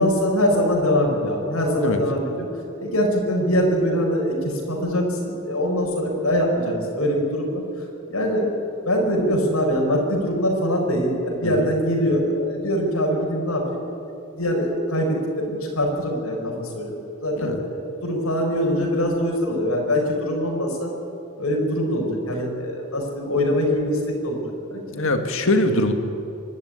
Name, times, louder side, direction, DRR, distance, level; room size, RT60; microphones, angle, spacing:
voice 1, 0.0-2.5 2.8-8.5 8.8-13.9 14.3-20.9 21.4-24.4 24.7-25.1, equal, 90° left, 0 dB, 5.1 m, -23 dB
voice 2, 24.9-25.9, left 1 dB, 65° left, 6 dB, 1.8 m, -22 dB
25.5 x 12.0 x 9.4 m, 2.7 s
head